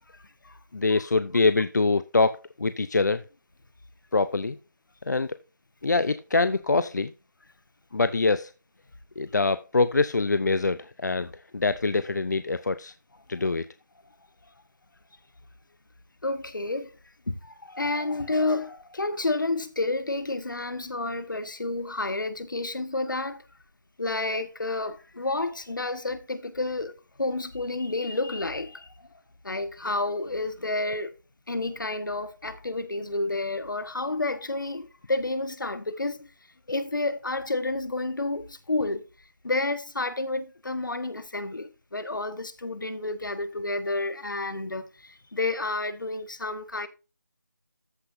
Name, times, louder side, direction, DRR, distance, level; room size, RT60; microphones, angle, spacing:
voice 1, 0.1-0.6 16.2-17.0 17.3-23.4 24.0-28.9 29.4-31.1 31.5-36.3 36.7-39.0 39.4-46.9, left 2 dB, 80° left, 1.4 m, -30 dB
voice 2, 0.7-3.2 4.1-4.6 5.1-5.4 5.8-7.1 7.9-8.5 9.2-12.9 13.3-13.7, left 3 dB, 65° left, 0.6 m, -24 dB
14.0 x 5.8 x 2.6 m
figure-of-eight pair, 175°, 10 cm